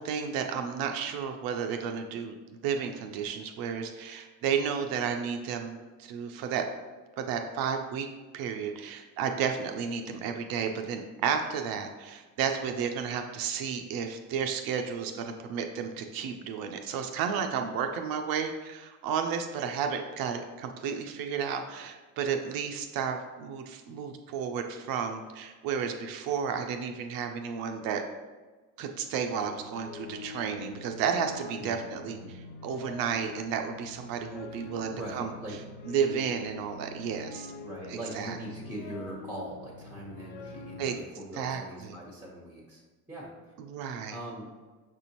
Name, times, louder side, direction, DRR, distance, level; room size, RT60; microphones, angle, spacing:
voice 1, 0.0-2.3 2.6-5.7 6.0-6.6 7.2-8.1 8.3-28.0 28.8-32.2 32.6-35.3 35.9-37.5 37.9-38.4 40.8-40.9 41.4-42.0 43.7-44.1, right 7 dB, 55° right, 5 dB, 0.5 m, -32 dB
sound 1, 29.3-41.0, left 4 dB, 55° left, 0.6 m, -45 dB
voice 2, 31.6-32.4 34.6-35.6 37.6-42.8 43.1-43.5 44.1-44.5, right 1 dB, 5° right, -3 dB, 1.1 m, -41 dB
6.0 x 2.6 x 2.9 m, 1.3 s
hypercardioid pair, 70°, 42 cm